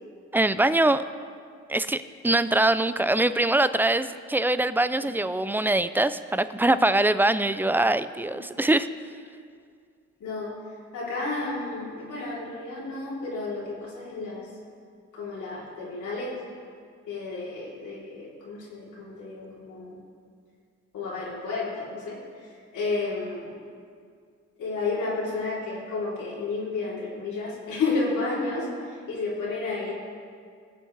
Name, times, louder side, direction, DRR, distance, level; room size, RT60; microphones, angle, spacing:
voice 1, 0.3-1.0 1.7-8.9, right 2 dB, 5° right, 13 dB, 0.4 m, -23 dB
voice 2, 10.2-10.5 10.9-14.5 15.1-16.4 17.1-20.0 20.9-23.6 24.6-29.9, left 3 dB, 75° left, -5 dB, 3.5 m, -31 dB
20.0 x 7.7 x 3.3 m, 2.2 s
cardioid pair, 90°, 30 cm